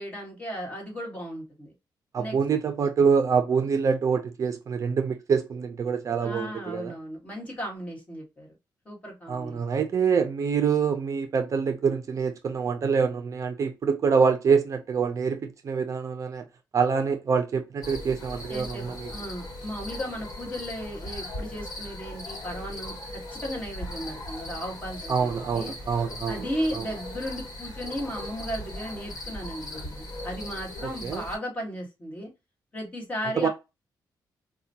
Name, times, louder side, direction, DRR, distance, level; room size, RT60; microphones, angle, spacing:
voice 1, 0.0-1.7 2.2-2.4 6.2-8.5 8.8-9.6 18.5-25.7 26.3-32.3 32.7-33.5, equal, 20° left, 1.4 m, -35 dB
voice 2, 2.1-6.9 9.3-16.4 16.7-19.1 25.1-26.5 26.7-26.8 31.0-31.2 33.4-33.5, right 6 dB, 45° right, 0.4 m, -25 dB
sound 1, 17.8-31.4, left 1 dB, 50° left, 1.2 m, -38 dB
4.8 x 2.2 x 2.7 m
wide cardioid pair, 150°, 8 cm